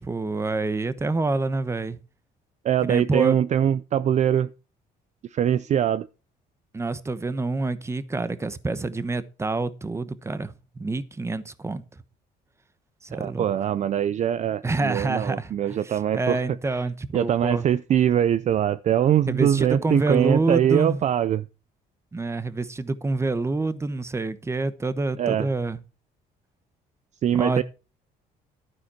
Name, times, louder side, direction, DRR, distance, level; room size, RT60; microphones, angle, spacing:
voice 1, 0.0-2.0 2.8-3.4 6.7-11.8 13.0-13.4 14.6-17.6 19.3-21.0 22.1-25.8 27.3-27.6, right 3 dB, 15° right, 1.0 m, -27 dB
voice 2, 2.6-4.5 5.3-6.1 13.2-16.4 17.1-21.5 25.2-25.5 27.2-27.6, right 10 dB, 45° right, 0.5 m, -22 dB
12.0 x 9.4 x 4.4 m
cardioid pair, 110°, 17 cm